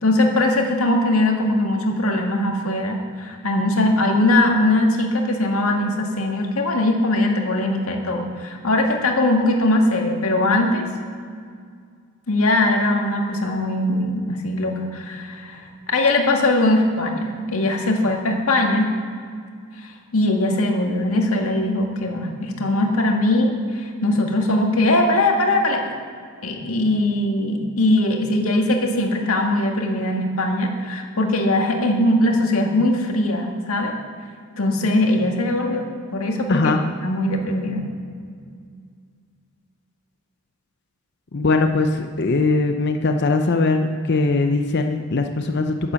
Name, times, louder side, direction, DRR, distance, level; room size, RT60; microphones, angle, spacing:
voice 1, 0.0-10.9 12.3-15.6 15.9-18.9 19.8-25.8 26.4-33.9 34.6-36.7 37.0-37.8, left 1 dB, 80° left, 2 dB, 1.8 m, -20 dB
voice 2, 41.3-45.9, left 3 dB, 50° left, 5 dB, 0.6 m, -20 dB
10.0 x 9.7 x 7.0 m, 2.1 s
head